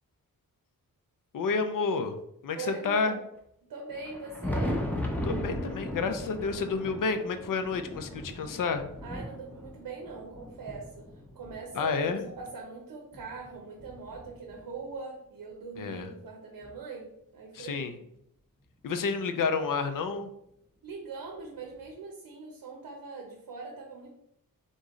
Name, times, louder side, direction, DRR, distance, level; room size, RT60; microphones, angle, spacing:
voice 1, 1.3-2.2 2.4-3.2 5.2-8.8 11.7-12.2 15.8-16.1 17.5-17.9 18.8-20.3, left 4 dB, 65° left, 8 dB, 0.5 m, -30 dB
voice 2, 2.5-3.2 3.7-4.8 9.0-18.1 20.8-24.1, right 4 dB, 85° right, 0 dB, 0.7 m, -42 dB
Thunder, 3.9-12.5 13.1-14.8 16.0-16.1 16.6-16.7 18.6-18.7 20.1-20.2 21.7-21.8, left 1 dB, 5° left, 0.5 m, -37 dB
3.8 x 3.0 x 3.7 m, 0.78 s
wide cardioid pair, 160°, 35 cm